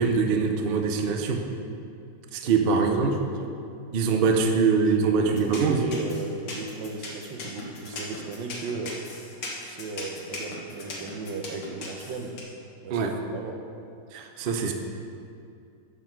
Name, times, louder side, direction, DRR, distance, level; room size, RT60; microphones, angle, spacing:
voice 1, 0.0-1.4 2.3-3.2 3.9-5.8 12.9-13.2 14.1-14.7, right 5 dB, 55° right, 4 dB, 0.6 m, -23 dB
voice 2, 3.0-3.5 4.1-9.0 9.6-12.4 12.8-13.6, right 3 dB, 80° right, 3 dB, 1.6 m, -36 dB
sound 1, 5.4-12.4, left 3 dB, 85° left, 2.2 m, -38 dB
12.5 x 6.0 x 4.6 m, 2.5 s
omnidirectional pair, 2.0 m